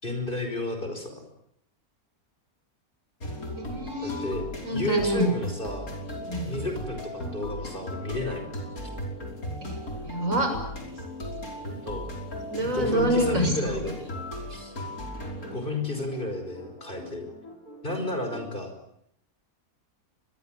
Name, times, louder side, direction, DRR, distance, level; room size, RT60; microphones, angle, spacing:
voice 1, 0.0-1.2 4.0-5.9 6.5-8.5 11.7-12.1 12.7-14.1 14.5-14.7 15.5-17.3 17.8-18.7, left 2 dB, 35° left, 6 dB, 5.5 m, -32 dB
sound 1, 3.2-18.5, left 1 dB, 75° left, 5.9 m, -37 dB
voice 2, 3.4-4.3 4.6-5.3 6.3-6.6 9.6-9.7 10.0-10.5 12.5-13.8, right 1 dB, 60° right, 5 dB, 6.9 m, -27 dB
26.0 x 21.5 x 9.2 m, 0.75 s
omnidirectional pair, 1.5 m